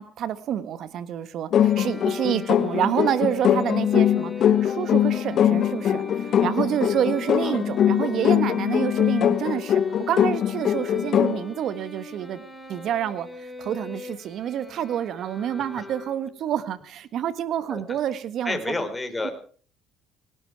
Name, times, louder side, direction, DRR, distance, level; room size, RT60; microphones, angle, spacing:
voice 1, 0.0-9.8 10.1-12.4 12.7-18.9 19.2-19.3, right 10 dB, 60° right, 14 dB, 1.5 m, -28 dB
sound 1, 1.5-11.5, left 9 dB, 55° left, 0.9 m, -22 dB
sound 2, 1.5-16.5, left 1 dB, 10° right, 6.5 m, -42 dB
voice 2, 18.4-19.3, left 2 dB, 15° left, 5 dB, 4.0 m, -29 dB
18.5 x 16.0 x 4.8 m, 0.43 s
supercardioid pair, 80°, 0 cm